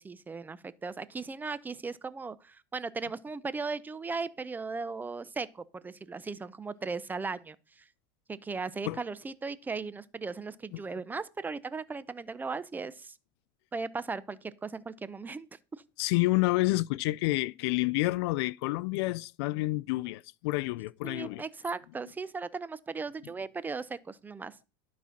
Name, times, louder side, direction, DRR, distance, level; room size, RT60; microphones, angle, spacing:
voice 1, 0.0-7.8 8.3-13.2 13.7-15.5 15.7-15.8 21.0-24.6, right 4 dB, 15° right, 0.5 m, -37 dB
voice 2, 16.0-21.4, left 20 dB, 75° left, 0.4 m, -29 dB
11.5 x 4.2 x 5.8 m
supercardioid pair, 135°, 14 cm